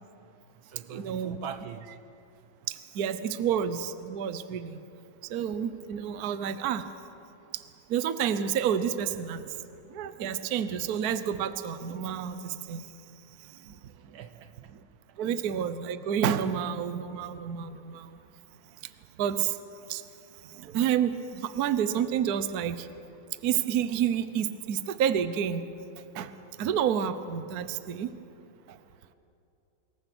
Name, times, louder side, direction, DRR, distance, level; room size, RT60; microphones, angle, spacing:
voice 1, 0.0-2.0 14.1-14.7 15.1-15.2, right 8 dB, 80° right, 1.8 m, -44 dB
voice 2, 0.9-1.4 2.7-4.8 5.2-6.9 7.5-7.6 7.9-9.5 9.9-12.9 13.4-14.2 15.2-18.2 19.2-19.6 19.9-20.0 20.4-22.9 23.4-25.6 26.1-26.3 26.6-28.1 28.7-28.8, right 8 dB, 55° right, 1.2 m, -29 dB
26.5 x 21.5 x 6.2 m
omnidirectional pair, 2.2 m